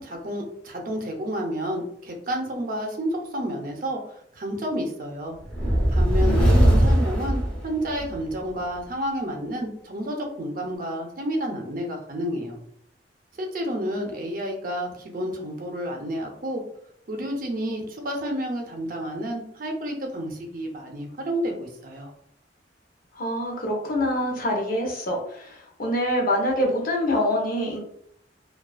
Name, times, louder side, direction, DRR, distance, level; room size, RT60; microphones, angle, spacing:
voice 1, 0.0-5.4 5.9-12.6 13.4-16.6 17.1-22.1, equal, 50° right, 2 dB, 0.5 m, -30 dB
sound 1, 5.5-8.2, equal, 5° left, 0.7 m, -20 dB
voice 2, 6.2-6.8 23.1-27.8, equal, 50° left, 0 dB, 0.6 m, -25 dB
2.3 x 2.3 x 2.3 m, 0.68 s
head